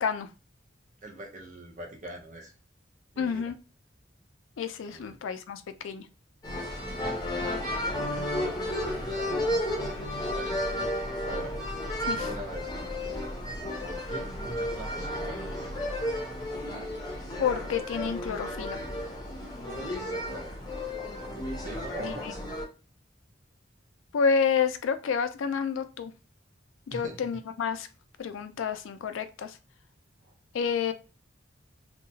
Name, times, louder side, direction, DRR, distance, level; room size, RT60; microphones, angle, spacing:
voice 1, 1.0-2.5 3.1-3.5 4.9-5.1 8.2-9.8 10.3-10.7 11.2-11.5 12.3-12.7 13.8-15.8 19.8-20.6 21.6-22.3 26.9-27.2 30.2-30.3, right 2 dB, 40° right, 1 dB, 0.6 m, -43 dB
voice 2, 3.2-3.6 4.6-6.1 12.0-12.3 17.4-18.8 22.0-22.1 24.1-26.1 26.9-27.9 28.2-29.6 30.5-30.9, left 6 dB, 85° left, 10 dB, 0.3 m, -29 dB
sound 1, 6.4-22.6, left 1 dB, 20° left, 0.6 m, -33 dB
2.8 x 2.2 x 2.7 m, 0.33 s
head